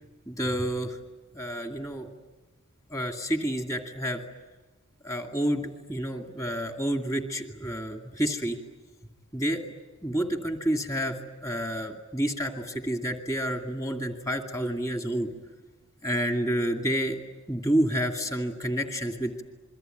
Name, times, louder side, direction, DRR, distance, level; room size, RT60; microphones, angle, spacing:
voice 1, 0.3-1.0 1.3-2.1 2.9-4.2 5.0-8.6 9.3-9.6 10.0-15.3 16.0-17.2 17.5-19.4, equal, 15° left, 4 dB, 2.4 m, -29 dB
27.5 x 23.0 x 9.2 m, 1.2 s
head